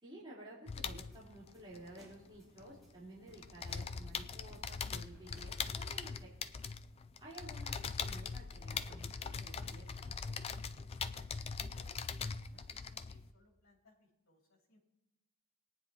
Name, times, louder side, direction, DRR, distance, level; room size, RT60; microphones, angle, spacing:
voice 1, 0.0-6.3 7.2-10.2, right 1 dB, 20° right, -8 dB, 3.7 m, -53 dB
sound 1, 0.7-2.9 3.2-13.3, left 5 dB, 25° left, 0.3 m, -42 dB
sound 2, 1.1-4.2 4.5-6.2, equal, ahead, 4.8 m, -63 dB
sound 3, 8.5-13.0, right 1 dB, 50° right, 1.7 m, -69 dB
voice 2, 11.1-14.8, left 2 dB, 65° left, -1 dB, 2.7 m, -67 dB
21.0 x 9.6 x 2.9 m, 1.0 s
head